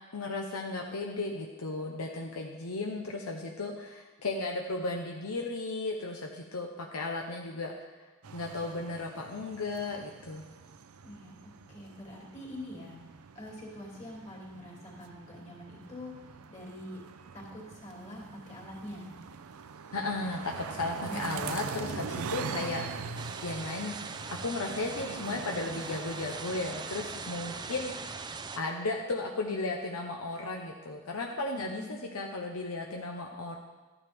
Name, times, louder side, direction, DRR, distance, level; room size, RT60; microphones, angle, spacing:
voice 1, 0.1-7.9 8.3-10.4 19.9-24.0 24.2-28.2 28.5-33.6, left 2 dB, 75° left, 1 dB, 0.9 m, -35 dB
sound 1, 8.2-27.6, right 5 dB, 75° right, 0.5 m, -43 dB
voice 2, 11.0-13.0 13.3-16.1 16.5-17.0 17.3-19.1 21.1-21.4 31.5-32.0, left 1 dB, 30° left, -4 dB, 2.9 m, -44 dB
sound 2, 23.2-28.6, right 4 dB, 20° right, 0.4 m, -41 dB
13.0 x 9.5 x 3.6 m, 1.3 s
head